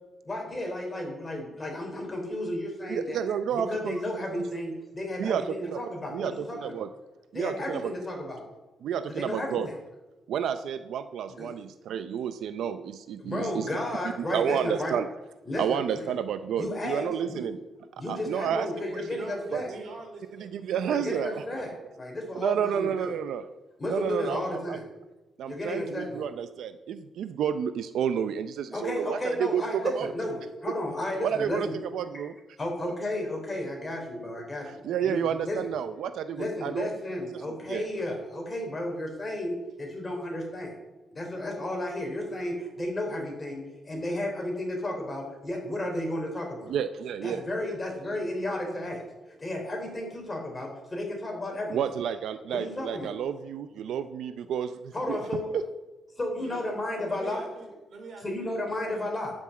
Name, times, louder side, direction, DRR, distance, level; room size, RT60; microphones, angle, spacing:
voice 1, 0.2-3.2 3.5-6.8 7.3-8.4 9.1-9.7 11.3-11.5 13.2-14.9 15.5-16.1 16.6-17.4 18.0-19.7 20.9-21.7 22.0-23.1 23.8-24.8 25.5-26.3 28.7-31.8 32.6-34.8 35.0-35.6 36.3-40.7 41.1-46.7 47.2-49.0 49.3-51.8 52.5-53.1 54.9-55.5 56.2-57.4 58.2-59.3, left 1 dB, 20° left, 1 dB, 3.6 m, -33 dB
voice 2, 2.9-4.0 4.3-4.4 5.2-5.8 6.1-6.9 7.3-7.9 8.8-9.7 10.3-13.7 14.3-15.1 15.6-17.6 18.1-18.7 18.9-19.2 19.5-19.6 20.4-21.4 22.3-23.5 23.9-24.8 25.4-30.1 31.2-31.7 31.9-32.3 34.6-36.9 37.7-37.9 46.7-47.4 51.7-55.2 55.5-55.6, right 8 dB, 80° right, 10 dB, 0.5 m, -30 dB
voice 3, 19.1-21.7 56.4-56.6 57.1-59.1, right 3 dB, 65° right, 3 dB, 3.3 m, -44 dB
12.0 x 6.1 x 8.4 m, 1.1 s
cardioid pair, 135°, 0 cm